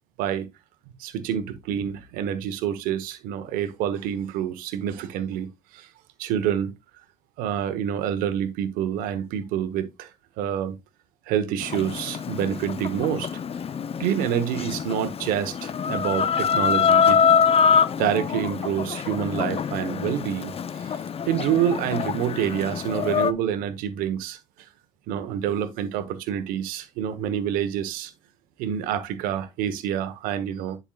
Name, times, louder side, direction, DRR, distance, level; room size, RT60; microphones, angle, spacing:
voice 1, 1.0-5.5 5.7-5.9 6.2-6.7 7.4-10.1 10.4-10.8 11.3-13.3 14.0-17.2 18.0-21.0 21.3-24.4 25.1-28.1 28.6-30.8, right 9 dB, 85° right, 1.1 m, -27 dB
Chicken rooster, 11.6-23.3, left 7 dB, 45° left, 0.6 m, -24 dB
10.0 x 5.6 x 2.4 m
supercardioid pair, 65°, 14 cm